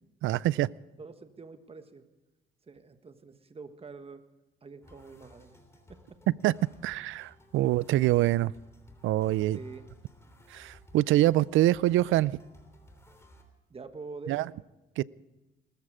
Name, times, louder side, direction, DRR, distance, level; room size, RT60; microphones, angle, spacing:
voice 1, 0.2-0.7 6.4-6.6 6.8-8.5 9.0-9.6 10.5-12.4 14.3-14.5 15.0-15.1, right 15 dB, 85° right, 0.4 m, -25 dB
voice 2, 1.0-2.0 2.6-4.2 4.6-5.6 5.9-6.2 7.6-7.7 9.5-9.9 13.7-14.5, right 4 dB, 30° right, 1.4 m, -46 dB
sound 1, 4.8-13.4, left 1 dB, 15° left, 3.1 m, -57 dB
19.5 x 14.0 x 5.0 m
cardioid pair, 90°, 20 cm